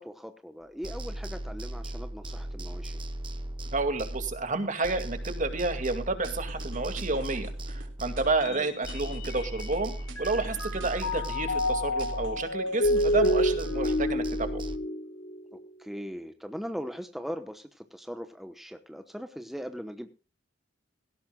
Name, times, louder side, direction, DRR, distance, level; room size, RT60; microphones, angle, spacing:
voice 1, 0.0-3.0 8.5-8.7 15.5-20.1, equal, ahead, 7 dB, 1.0 m, -40 dB
sound 1, 0.8-4.6 4.8-8.6 8.8-12.6 12.8-14.8, right 1 dB, 25° right, 1.1 m, -37 dB
voice 2, 3.7-9.9 10.2-14.6, right 3 dB, 45° right, 8 dB, 2.3 m, -30 dB
sound 2, 6.2-7.9 8.2-9.8 10.1-11.7 12.0-13.6, right 3 dB, 80° right, 3.7 m, -49 dB
Mallet percussion, 8.4-9.8 10.2-15.6, left 1 dB, 70° left, 2.9 m, -29 dB
18.0 x 17.0 x 2.3 m, 0.32 s
head